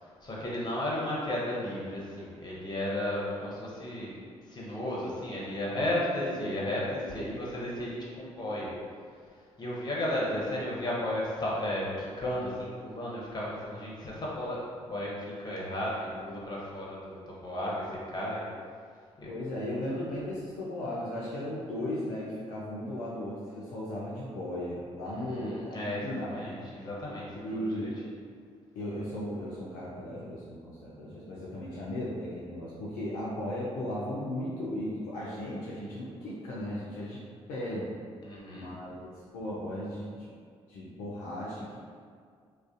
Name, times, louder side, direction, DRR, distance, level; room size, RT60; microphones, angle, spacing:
voice 1, 0.0-4.1 4.5-8.7 9.6-18.4 19.2-19.3 25.1-27.9 38.2-38.7, left 1 dB, 30° left, -6 dB, 0.8 m, -34 dB
voice 2, 6.3-6.6 19.3-26.4 27.3-28.0 28.8-37.9 38.5-40.3 40.7-41.8, left 1 dB, 60° left, -6 dB, 0.4 m, -36 dB
2.4 x 2.1 x 2.4 m, 2.1 s
figure-of-eight pair, 40°, 15 cm